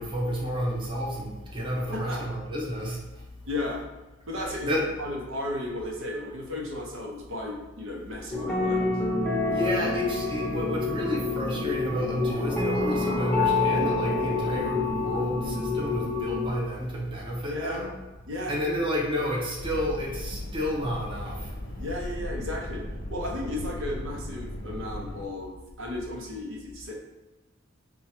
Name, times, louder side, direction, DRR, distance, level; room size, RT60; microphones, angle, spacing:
voice 1, 0.0-3.2 4.7-4.8 9.5-17.9 18.5-21.8, equal, 25° right, -3 dB, 0.7 m, -30 dB
voice 2, 3.5-3.8 4.3-8.9 17.5-17.8 18.3-18.6 21.8-22.8 23.1-26.9, left 1 dB, 75° right, -1 dB, 0.9 m, -34 dB
sound 1, 8.3-16.6, left 3 dB, 5° left, 0.7 m, -27 dB
sound 2, 19.6-25.3, left 1 dB, 50° left, 0.5 m, -37 dB
4.4 x 2.3 x 4.3 m, 1.1 s
head